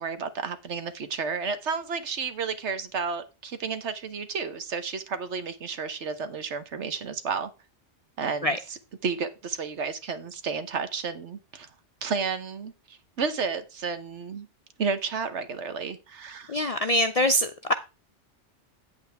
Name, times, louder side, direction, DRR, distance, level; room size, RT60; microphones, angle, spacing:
voice 1, 0.0-7.5 8.2-8.6 9.0-11.7 12.0-14.5 14.8-16.6, right 5 dB, 75° right, 1.4 m, -32 dB
voice 2, 16.5-17.7, equal, 50° left, 0.4 m, -24 dB
8.6 x 8.2 x 3.4 m
omnidirectional pair, 1.2 m